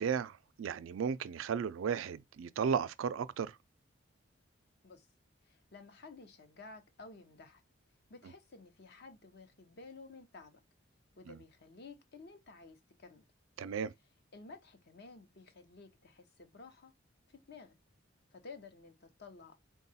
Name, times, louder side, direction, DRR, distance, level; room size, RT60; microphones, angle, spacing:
voice 1, 0.0-3.5 11.3-11.4 13.6-13.9, right 7 dB, 80° right, 0.4 m, -35 dB
voice 2, 5.5-7.6 8.1-10.6 11.2-13.2 14.3-16.9 17.3-17.8 18.3-19.6, left 3 dB, 55° left, 0.8 m, -53 dB
3.7 x 2.3 x 4.0 m
head